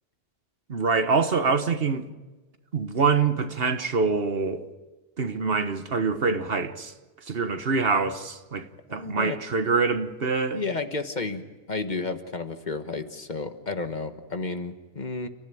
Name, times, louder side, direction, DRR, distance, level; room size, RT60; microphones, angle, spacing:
voice 1, 0.7-2.0 2.7-4.6 5.2-6.9 7.2-10.6, right 4 dB, 65° right, 1.5 m, -25 dB
voice 2, 8.9-9.4 10.5-15.3, left 3 dB, 45° left, 1.5 m, -32 dB
30.0 x 14.5 x 9.2 m
omnidirectional pair, 1.0 m